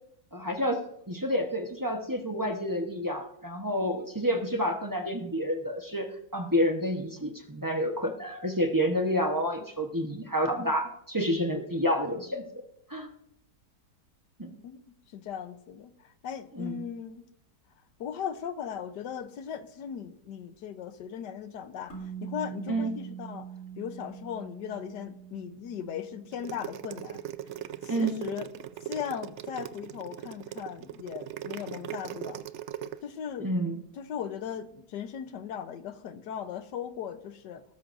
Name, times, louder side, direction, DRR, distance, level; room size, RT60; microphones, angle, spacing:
voice 1, 0.3-12.4 12.9-13.1 14.4-14.5 16.5-16.8 22.7-22.9 27.9-28.2 33.4-33.8, equal, 15° right, 3 dB, 0.9 m, -29 dB
voice 2, 14.6-17.3 18.0-23.5 23.8-27.2 27.8-28.5 28.8-32.5 33.0-33.5 34.0-37.6, left 8 dB, 80° left, 10 dB, 1.5 m, -38 dB
sound 1, 21.9-28.4, right 8 dB, 40° left, 3.7 m, -44 dB
sound 2, 26.3-33.0, right 11 dB, 85° right, 0.6 m, -39 dB
19.0 x 13.0 x 2.6 m, 0.76 s
omnidirectional pair, 1.8 m